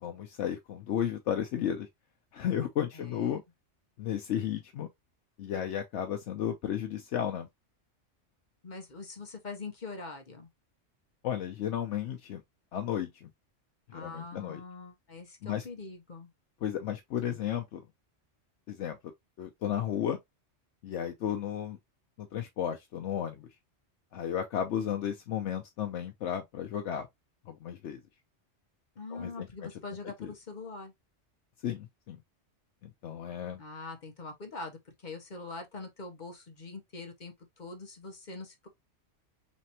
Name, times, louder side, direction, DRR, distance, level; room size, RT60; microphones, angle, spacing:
voice 1, 0.0-1.9 2.3-3.4 4.0-4.9 5.4-7.5 11.2-12.4 12.7-13.3 13.9-14.6 15.4-15.7 16.6-17.8 18.7-19.0 19.4-20.2 20.8-21.8 22.2-23.5 24.1-27.1 27.5-28.0 29.1-29.5 30.2-30.3 31.6-32.2 32.8-33.6, left 9 dB, 75° left, 0.9 m, -33 dB
voice 2, 2.9-3.4 8.6-10.5 13.9-16.3 29.0-30.9 33.6-38.7, left 3 dB, 40° left, 1.0 m, -43 dB
4.2 x 3.3 x 2.8 m
omnidirectional pair, 1.2 m